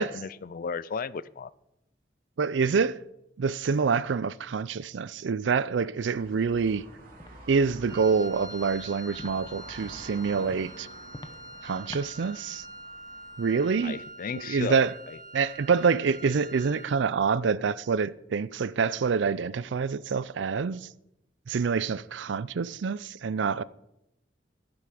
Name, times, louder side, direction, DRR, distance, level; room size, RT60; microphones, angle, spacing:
voice 1, 0.0-1.5 13.8-15.2, left 5 dB, 50° left, 0.4 m, -34 dB
voice 2, 2.4-3.0 3.4-6.8 7.5-10.9 11.6-12.7 13.4-14.0 14.4-14.9 15.3-20.9 21.5-23.6, right 5 dB, 75° right, 0.4 m, -26 dB
sound 1, 6.1-13.9, right 2 dB, 50° right, 3.0 m, -50 dB
Walk footsteps, 7.2-7.3 7.8-8.0 8.5-8.6 9.2-9.3 9.8-10.1 10.5-10.7 11.1-11.4 11.9-12.1, left 1 dB, 25° left, 0.8 m, -43 dB
Wind instrument woodwind instrument, 7.9-17.1, right 1 dB, 20° right, 1.5 m, -45 dB
11.5 x 9.9 x 4.9 m
head